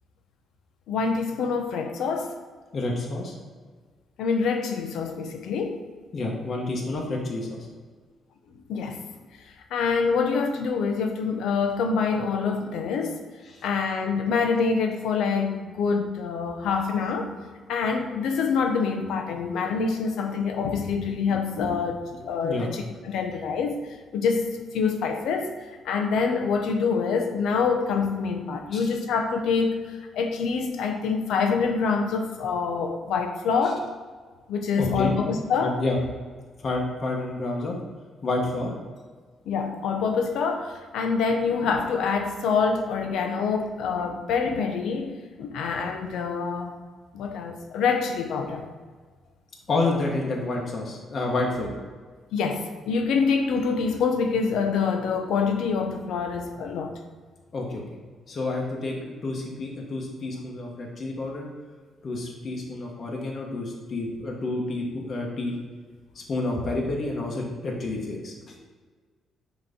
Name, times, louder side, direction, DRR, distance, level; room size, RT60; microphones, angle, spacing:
voice 1, 0.9-2.3 4.2-5.8 8.7-9.0 9.7-13.2 13.6-17.3 17.7-23.8 24.1-24.5 24.7-25.5 25.8-33.8 34.5-35.7 39.5-45.1 45.4-46.7 47.1-48.7 52.3-56.9, left 5 dB, 80° left, 5 dB, 0.7 m, -26 dB
voice 2, 2.7-3.3 6.1-7.6 13.5-13.6 22.1-22.7 28.7-28.9 34.7-35.1 35.6-35.9 36.6-37.8 38.2-38.7 49.7-51.7 57.5-57.8 58.3-61.5 62.0-65.6 66.1-68.5, left 2 dB, 45° left, -2 dB, 1.1 m, -29 dB
6.1 x 3.1 x 5.1 m, 1.5 s
cardioid pair, 90°, 0 cm